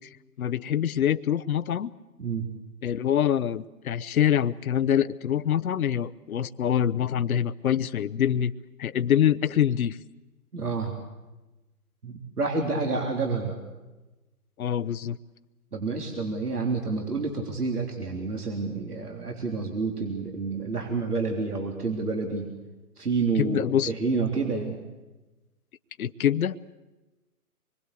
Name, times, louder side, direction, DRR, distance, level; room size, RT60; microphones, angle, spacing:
voice 1, 0.4-1.9 2.8-8.5 8.8-10.0 14.6-15.2 23.4-23.9 26.0-26.6, left 9 dB, 70° left, 13 dB, 0.9 m, -25 dB
voice 2, 10.5-10.9 12.0-13.6 15.7-22.5 23.0-24.8, right 4 dB, 85° right, 2 dB, 3.6 m, -29 dB
26.0 x 22.0 x 8.3 m, 1.1 s
figure-of-eight pair, 125°, 45 cm